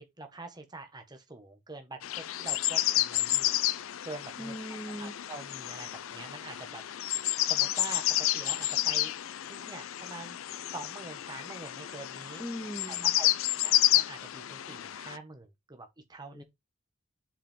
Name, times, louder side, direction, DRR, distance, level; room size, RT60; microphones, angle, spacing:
voice 1, 0.0-3.6 4.0-4.5 4.9-7.1 7.4-9.1 9.4-10.4 10.6-12.4 12.8-13.3 13.6-16.4, right 2 dB, 20° right, 1.6 m, -45 dB
sound 1, 2.0-15.2, left 14 dB, 85° left, 0.5 m, -30 dB
voice 2, 4.4-5.1 12.4-13.1 16.3-16.4, equal, 5° left, 2.0 m, -39 dB
7.5 x 4.9 x 3.7 m
head